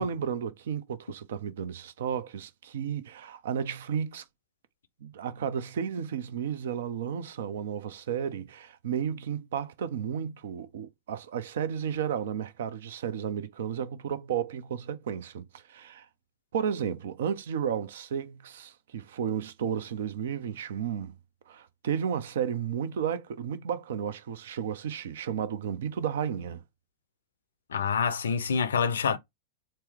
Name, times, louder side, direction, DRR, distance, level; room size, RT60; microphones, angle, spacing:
voice 1, 0.0-4.2 5.0-16.1 16.5-21.2 21.5-26.6, right 8 dB, 60° right, 0.5 m, -33 dB
voice 2, 27.7-29.2, left 6 dB, 65° left, 0.5 m, -26 dB
4.3 x 2.1 x 3.4 m
figure-of-eight pair, 90°, 0 cm